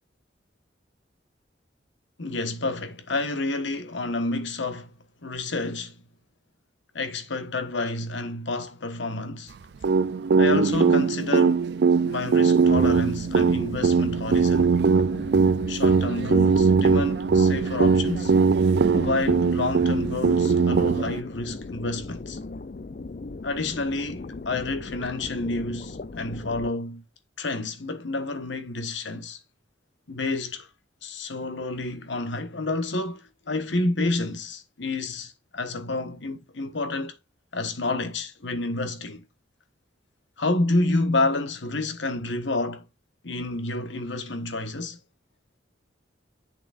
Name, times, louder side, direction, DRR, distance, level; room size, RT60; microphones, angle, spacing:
voice 1, 2.2-4.9 5.2-5.9 6.9-9.5 10.4-11.7 12.0-14.7 15.7-18.3 18.9-22.4 23.4-27.0 27.4-29.4 30.1-30.7 31.0-37.1 37.5-39.2 40.4-42.8 43.2-45.0, left 2 dB, 80° left, 1.3 m, -29 dB
sound 1, 9.8-21.2, right 5 dB, 60° right, 0.4 m, -21 dB
sound 2, 13.2-26.7, left 3 dB, 45° left, 0.4 m, -39 dB
8.2 x 7.0 x 2.5 m
head